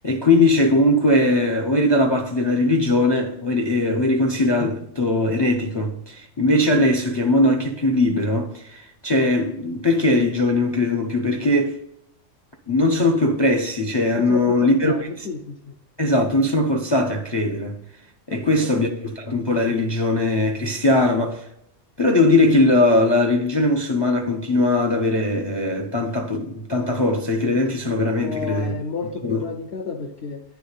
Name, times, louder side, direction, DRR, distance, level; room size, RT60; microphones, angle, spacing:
voice 1, 0.0-11.8 12.7-15.3 16.0-17.8 18.3-21.5 22.0-28.7 29.2-29.4, left 2 dB, 40° left, 0.3 m, -20 dB
voice 2, 14.2-15.7 18.3-18.4 28.2-30.4, left 5 dB, 60° left, 0.8 m, -31 dB
9.4 x 3.5 x 3.9 m
omnidirectional pair, 1.3 m